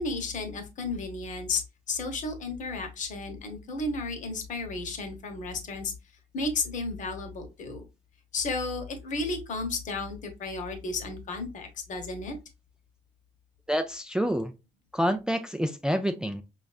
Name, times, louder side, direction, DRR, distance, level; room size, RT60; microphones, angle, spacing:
voice 1, 0.0-1.6 1.9-5.9 6.3-7.9 8.3-12.3, left 3 dB, 60° left, 6 dB, 1.0 m, -33 dB
voice 2, 13.7-14.5 14.9-16.4, equal, 5° right, 6 dB, 0.3 m, -27 dB
5.2 x 2.4 x 2.4 m, 0.27 s
cardioid pair, 100°, 15 cm